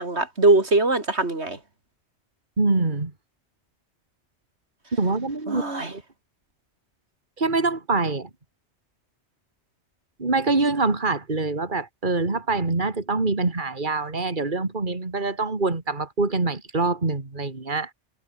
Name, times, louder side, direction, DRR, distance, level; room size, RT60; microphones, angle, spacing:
voice 1, 0.0-1.6 5.5-5.9, right 2 dB, 75° right, 4.3 m, -21 dB
voice 2, 2.6-3.1 4.9-6.0 7.4-8.3 10.2-17.9, right 3 dB, 45° right, 2.8 m, -25 dB
omnidirectional pair, 1.1 m